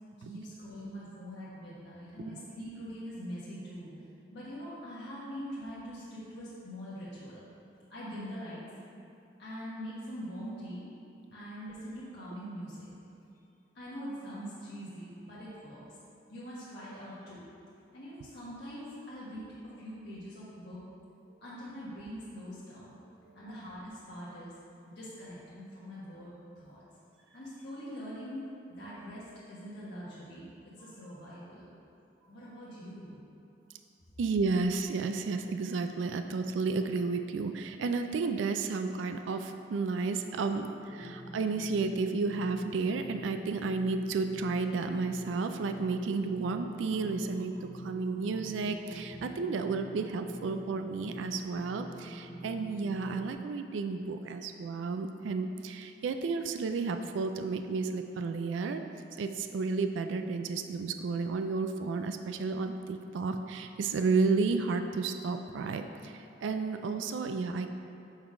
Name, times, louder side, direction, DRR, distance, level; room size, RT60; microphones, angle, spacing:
voice 1, 0.2-3.9 4.3-7.4 7.9-8.6 9.4-10.9 11.3-12.9 13.7-15.8 16.3-17.4 17.9-20.8 21.4-23.0 23.3-24.5 24.9-26.8 27.2-28.5 28.8-31.7 32.3-33.2, equal, 60° left, -10 dB, 1.4 m, -43 dB
voice 2, 34.2-58.8 59.2-67.7, right 4 dB, 80° right, 7 dB, 0.3 m, -32 dB
sound 1, 40.8-53.3, equal, 30° right, 0.9 m, -45 dB
7.1 x 3.8 x 4.9 m, 2.7 s
head